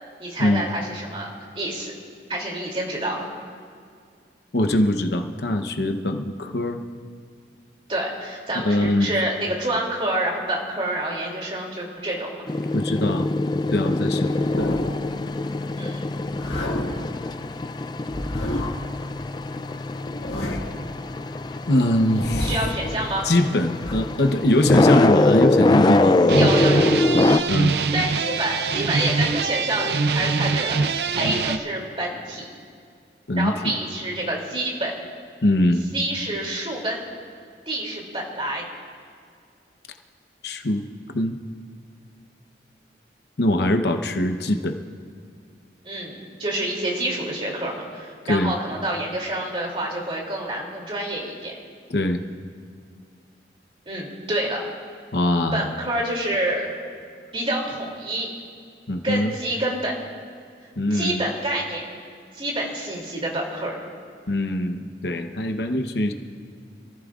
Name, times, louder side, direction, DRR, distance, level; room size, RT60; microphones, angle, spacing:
voice 1, 0.2-1.3 1.5-1.9 2.3-3.3 7.9-12.3 15.8-16.0 22.4-23.3 26.3-26.9 27.9-32.5 33.4-34.9 35.9-37.0 37.7-38.6 45.8-51.5 53.9-54.6 55.5-56.7 57.3-58.3 59.0-59.9 60.9-61.8 62.3-63.8, right 1 dB, 30° right, -1 dB, 2.8 m, -27 dB
voice 2, 4.5-6.8 8.6-9.1 12.7-13.3 13.7-14.9 21.7-22.5 23.2-26.5 27.5-27.7 33.3-33.8 35.4-35.8 40.4-40.9 41.1-41.4 43.4-44.8 48.2-48.5 51.9-52.2 55.1-55.7 58.9-59.3 60.8-61.3 64.3-66.1, left 1 dB, 70° left, 6 dB, 0.9 m, -22 dB
sound 1, 12.5-27.4, left 2 dB, 25° left, 0.4 m, -23 dB
sound 2, 14.3-15.1 16.2-17.1 18.1-18.9 19.9-20.9 21.9-22.8 23.8-23.9, left 1 dB, 85° left, 1.8 m, -30 dB
sound 3, 24.5-24.6 25.2-25.9 26.2-31.6, right 4 dB, 70° right, 0.5 m, -23 dB
27.0 x 15.0 x 2.5 m, 2.2 s
head